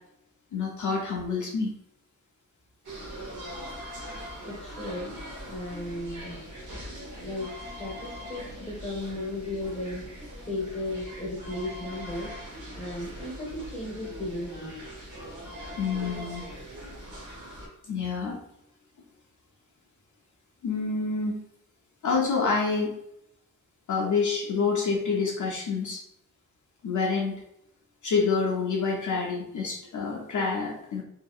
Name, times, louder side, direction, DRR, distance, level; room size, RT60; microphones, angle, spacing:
voice 1, 0.5-1.7 15.8-16.5 17.9-18.4 20.6-21.4 22.0-22.9 23.9-26.0 26.8-27.4 28.0-31.0, left 4 dB, 60° left, -3 dB, 0.6 m, -27 dB
sound 1, 2.8-17.7, equal, 55° right, 1.0 m, -41 dB
voice 2, 4.4-6.4 7.2-12.3 12.7-14.7, left 1 dB, 20° left, -2 dB, 0.8 m, -35 dB
2.7 x 2.7 x 2.3 m, 0.77 s
wide cardioid pair, 140°, 35 cm